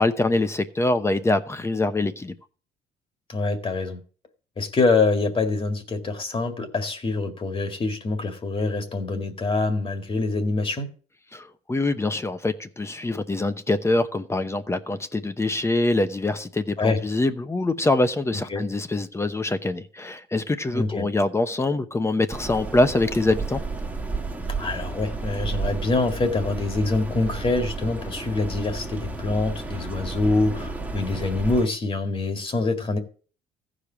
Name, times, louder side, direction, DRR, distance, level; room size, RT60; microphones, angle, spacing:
voice 1, 0.0-2.3 11.3-23.6, left 2 dB, 15° left, 0.9 m, -24 dB
voice 2, 3.3-4.0 4.6-10.9 16.8-17.0 18.5-18.6 20.7-21.1 24.6-33.0, left 3 dB, 30° left, 1.9 m, -25 dB
sound 1, 22.3-31.7, right 3 dB, 10° right, 1.4 m, -32 dB
14.5 x 5.1 x 7.1 m
cardioid pair, 110°, 17 cm